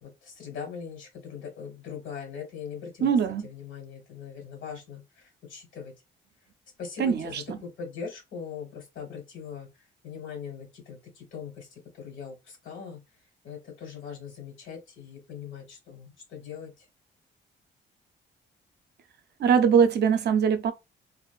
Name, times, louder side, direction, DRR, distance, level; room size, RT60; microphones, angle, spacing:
voice 1, 0.0-3.1 3.4-5.9 6.8-13.0 13.4-16.9, left 6 dB, 75° left, 1.4 m, -41 dB
voice 2, 3.0-3.5 7.0-7.6 19.4-20.7, right 7 dB, 60° right, 0.5 m, -22 dB
2.4 x 2.3 x 2.3 m
cardioid pair, 90°, 20 cm